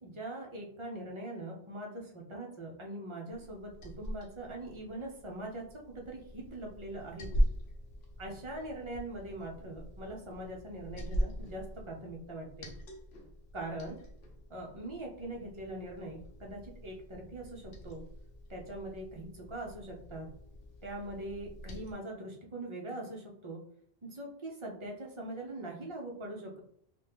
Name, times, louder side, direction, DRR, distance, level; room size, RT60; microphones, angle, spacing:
voice 1, 0.0-7.3 8.2-12.7 13.5-14.0 14.5-18.0 18.5-20.3 20.8-23.6 24.1-26.6, right 1 dB, 35° right, -1 dB, 0.6 m, -42 dB
Liquid, 3.3-21.9, equal, 85° left, 0.9 m, -40 dB
2.8 x 2.3 x 3.4 m, 0.65 s
omnidirectional pair, 1.1 m